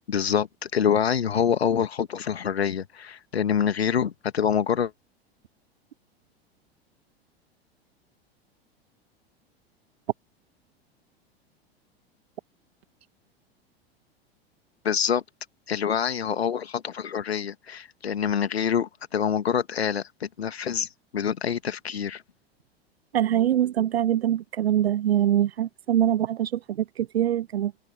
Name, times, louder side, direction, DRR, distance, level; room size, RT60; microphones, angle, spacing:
voice 1, 0.1-4.9 14.8-15.2 15.7-22.2, left 8 dB, 75° left, 1.9 m, -26 dB
voice 2, 23.1-26.8 27.1-27.7, right 11 dB, 75° right, 0.5 m, -23 dB
figure-of-eight pair, 85°, 31 cm